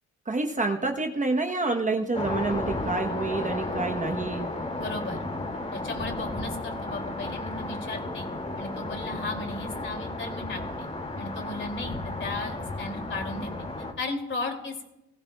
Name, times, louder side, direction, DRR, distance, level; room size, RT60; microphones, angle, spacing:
voice 1, 0.3-4.5, right 3 dB, 25° right, 4 dB, 1.1 m, -28 dB
sound 1, 2.1-13.9, left 2 dB, 20° left, 2.5 m, -33 dB
voice 2, 4.8-5.2 5.7-8.3 8.6-10.9 11.2-13.5 14.0-14.8, left 2 dB, 40° left, 3 dB, 2.9 m, -35 dB
19.5 x 15.0 x 2.4 m, 0.91 s
cardioid pair, 90°, 30 cm